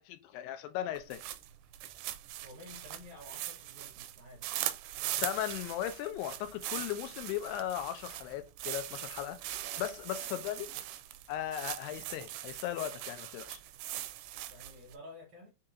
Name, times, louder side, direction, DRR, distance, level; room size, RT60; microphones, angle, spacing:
voice 1, 0.1-1.2 5.2-9.5 9.8-10.7 11.3-13.6, left 11 dB, 90° left, 2.7 m, -37 dB
sound 1, 1.0-15.0, right 13 dB, 90° right, 2.6 m, -41 dB
voice 2, 2.4-4.5 10.2-10.9 14.5-15.5, left 1 dB, 70° right, 1.8 m, -52 dB
6.5 x 2.8 x 2.4 m
omnidirectional pair, 4.6 m